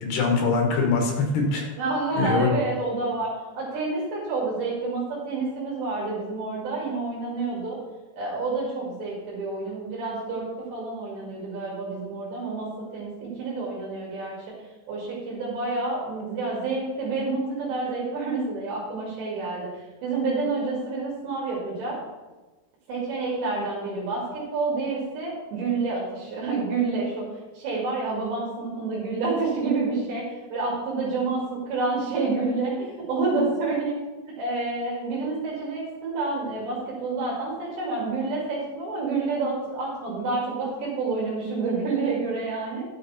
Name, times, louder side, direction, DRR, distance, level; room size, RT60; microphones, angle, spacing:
voice 1, 0.0-1.7 2.2-2.5, left 4 dB, 65° left, 2 dB, 3.5 m, -23 dB
voice 2, 1.8-3.3 3.5-7.8 8.1-12.7 12.9-14.3 14.9-22.0 22.9-27.3 27.5-34.0 34.4-42.8, right 3 dB, 70° right, -5 dB, 4.5 m, -28 dB
11.5 x 7.3 x 4.3 m, 1.2 s
omnidirectional pair, 5.3 m